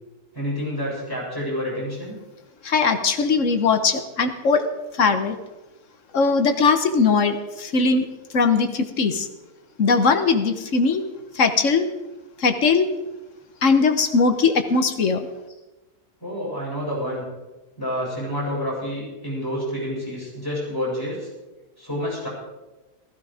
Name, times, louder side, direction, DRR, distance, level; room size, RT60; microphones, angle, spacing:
voice 1, 0.3-2.2 16.2-17.2 17.8-21.3 21.8-22.3, equal, 15° left, -6 dB, 7.6 m, -28 dB
voice 2, 2.6-4.6 4.9-5.4 6.1-8.1 8.3-9.3 9.8-11.0 11.3-11.9 12.4-12.9 13.6-15.3, left 4 dB, 55° left, 9 dB, 1.5 m, -20 dB
15.5 x 15.0 x 5.0 m, 1.1 s
omnidirectional pair, 1.6 m